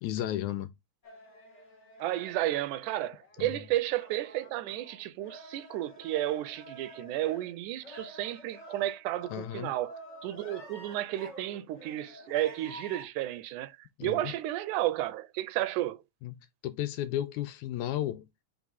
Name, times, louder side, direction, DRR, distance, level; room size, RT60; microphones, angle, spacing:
voice 1, 0.0-0.7 3.4-3.6 9.3-9.7 14.0-14.3 16.2-16.3 16.6-18.4, left 12 dB, 80° left, 2.0 m, -34 dB
sound 1, 1.0-13.0, equal, 45° left, 0.9 m, -50 dB
voice 2, 2.0-9.9 10.2-16.0, right 14 dB, 90° right, 2.1 m, -32 dB
4.9 x 3.5 x 5.4 m
omnidirectional pair, 3.5 m